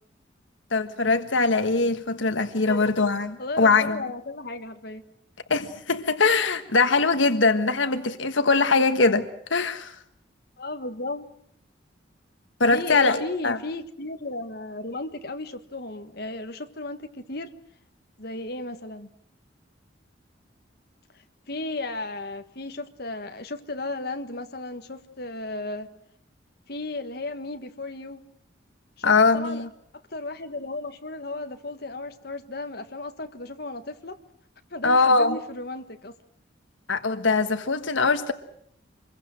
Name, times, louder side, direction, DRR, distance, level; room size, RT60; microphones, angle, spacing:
voice 1, 0.7-4.0 5.5-9.9 12.6-13.6 29.0-29.7 34.8-35.4 36.9-38.3, left 3 dB, 80° left, 1.5 m, -22 dB
voice 2, 3.4-5.0 10.6-11.3 12.7-17.5 18.2-19.1 21.5-25.9 26.7-28.2 29.0-29.6 29.9-34.2 34.7-36.1, left 2 dB, 55° left, 1.7 m, -34 dB
26.0 x 22.0 x 7.7 m
head